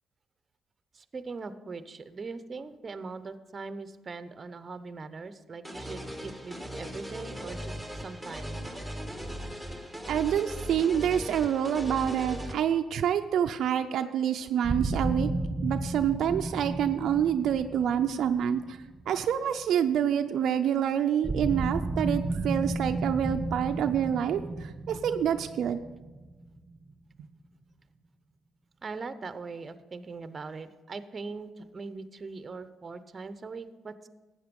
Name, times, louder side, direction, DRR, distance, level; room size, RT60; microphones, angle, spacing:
voice 1, 0.9-8.7 28.8-34.1, right 4 dB, 35° right, 12 dB, 0.8 m, -41 dB
sound 1, 5.6-12.5, equal, 5° left, 1.8 m, -38 dB
voice 2, 10.1-15.3 15.6-25.8, right 9 dB, 70° right, 7 dB, 0.5 m, -27 dB
sound 2, 14.6-19.6 21.2-26.9, right 2 dB, 20° right, 1.3 m, -33 dB
13.0 x 8.7 x 5.3 m, 1.2 s
cardioid pair, 90°, 0 cm